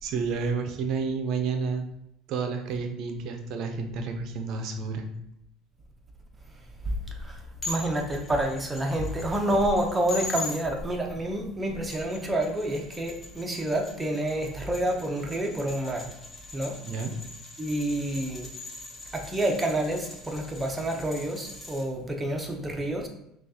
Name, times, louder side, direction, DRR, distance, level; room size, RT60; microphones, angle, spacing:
voice 1, 0.0-1.8 2.3-5.1 16.9-17.1, right 5 dB, 60° right, 5 dB, 0.6 m, -30 dB
voice 2, 7.1-7.4 7.7-16.1 16.5-16.8 17.6-18.5 19.1-23.1, right 1 dB, 15° right, 2 dB, 0.8 m, -28 dB
sound 1, 7.6-10.6 11.7-21.8, left 3 dB, 25° left, 1.1 m, -42 dB
6.0 x 2.4 x 2.8 m, 0.79 s
supercardioid pair, 95°, 0 cm